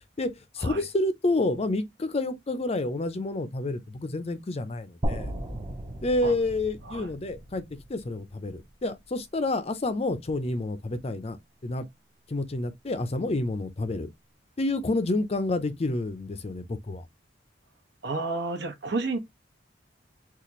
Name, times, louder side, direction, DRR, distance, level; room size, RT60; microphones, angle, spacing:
voice 1, 0.5-5.3 6.0-7.6 7.9-11.4 11.6-11.9 12.3-14.1 14.6-17.0, left 2 dB, 35° left, 0.5 m, -29 dB
sound 1, 5.0-9.1, right 1 dB, 25° right, 0.7 m, -36 dB
voice 2, 18.0-19.2, right 3 dB, 65° right, 1.1 m, -31 dB
4.1 x 2.5 x 3.0 m
head